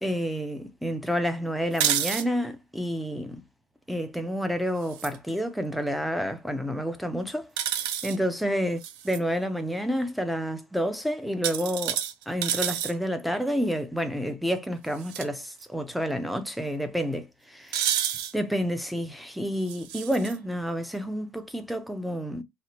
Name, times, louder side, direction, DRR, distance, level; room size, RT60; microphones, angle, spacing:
voice 1, 0.0-3.4 3.9-7.5 8.0-8.8 9.0-12.0 12.3-17.8 18.3-22.4, equal, ahead, 0.3 m, -29 dB
sound 1, 1.7-2.2 4.8-5.2 7.6-8.2 8.8-9.2 11.4-12.9 15.0-15.2 15.6-15.7 17.7-18.3 19.7-20.4, right 10 dB, 85° right, 0.4 m, -29 dB
2.8 x 2.0 x 2.7 m
cardioid pair, 165°, 8 cm